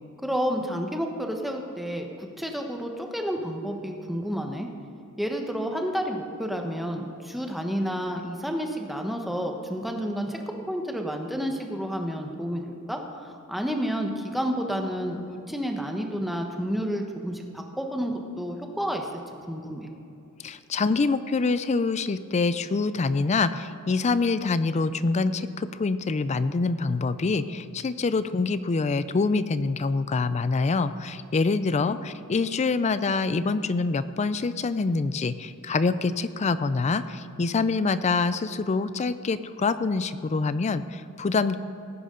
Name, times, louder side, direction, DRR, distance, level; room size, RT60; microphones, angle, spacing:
voice 1, 0.2-4.7 5.2-10.4 10.7-12.6 12.9-19.2 19.5-19.9 31.8-32.0, equal, ahead, 2 dB, 1.0 m, -30 dB
voice 2, 20.4-41.6, left 4 dB, 30° left, 14 dB, 0.4 m, -25 dB
17.5 x 9.6 x 3.8 m, 2.8 s
head